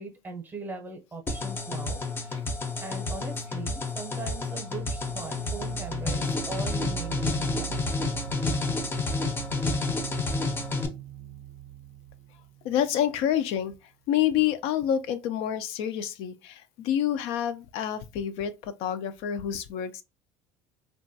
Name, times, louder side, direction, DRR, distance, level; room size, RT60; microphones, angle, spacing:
voice 1, 0.0-2.3 2.8-7.8, right 4 dB, 20° right, 0.7 m, -40 dB
sound 1, 1.3-10.9, left 3 dB, 20° left, 0.5 m, -30 dB
sound 2, 4.7-13.4, right 16 dB, 80° right, 0.4 m, -40 dB
voice 2, 12.6-13.7 14.1-20.0, left 10 dB, 75° left, 0.4 m, -28 dB
2.9 x 2.2 x 2.6 m
cardioid pair, 135°, 10 cm